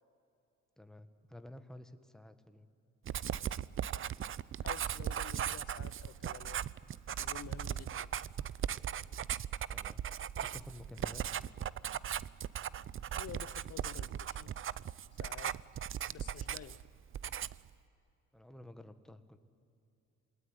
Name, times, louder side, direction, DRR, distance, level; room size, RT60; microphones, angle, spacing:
voice 1, 0.8-2.7 9.7-10.0 10.4-11.2 18.3-19.4, left 1 dB, ahead, 9 dB, 1.6 m, -51 dB
Writing, 3.1-16.9 17.1-17.7, right 9 dB, 45° right, 0.6 m, -38 dB
voice 2, 4.6-6.6 7.2-8.1 13.1-14.5 15.2-15.5 16.1-16.8, left 10 dB, 55° left, 14 dB, 0.7 m, -50 dB
28.0 x 20.0 x 9.8 m, 2.6 s
cardioid pair, 90°, 30 cm